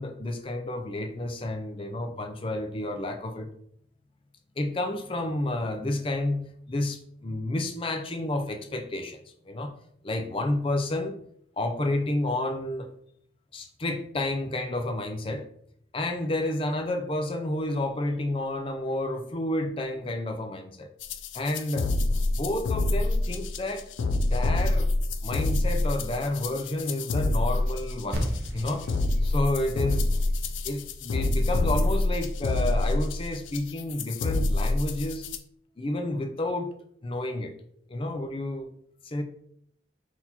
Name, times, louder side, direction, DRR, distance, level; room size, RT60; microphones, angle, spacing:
voice 1, 0.0-3.5 4.6-9.7 10.0-11.2 11.6-12.9 13.5-15.5 15.9-20.9 21.3-23.8 24.3-24.9 25.2-28.2 28.5-28.9 29.2-30.1 30.6-35.2 35.8-36.7 37.0-37.5 37.9-38.7 39.0-39.2, left 1 dB, 30° left, 6 dB, 0.4 m, -30 dB
sound 1, 21.0-35.4, left 2 dB, 90° left, 0.4 m, -26 dB
sound 2, 28.1-32.6, equal, 60° right, 0.7 m, -37 dB
4.0 x 2.9 x 4.1 m, 0.67 s
head